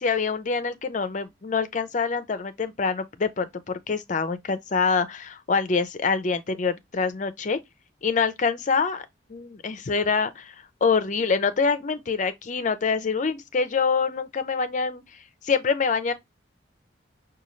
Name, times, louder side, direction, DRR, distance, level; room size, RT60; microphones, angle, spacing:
voice 1, 0.0-3.5 3.9-7.6 8.0-10.5 10.8-15.0 15.4-16.1, left 5 dB, 40° left, 0.5 m, -25 dB
5.1 x 2.3 x 3.0 m
head